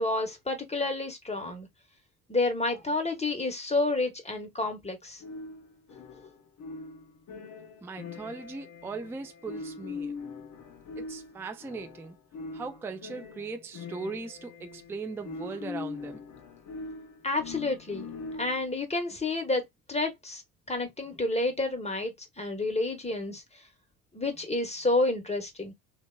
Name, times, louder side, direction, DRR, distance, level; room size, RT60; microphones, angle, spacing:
voice 1, 0.0-1.7 2.3-5.2 17.2-20.4 20.7-23.4 24.1-25.7, left 2 dB, 15° left, 1.1 m, -30 dB
sound 1, 5.2-18.8, left 4 dB, 40° left, 0.9 m, -42 dB
voice 2, 7.8-10.2 11.0-12.2 12.5-16.2, right 4 dB, 5° right, 0.3 m, -39 dB
2.7 x 2.3 x 2.2 m
hypercardioid pair, 75°, 48 cm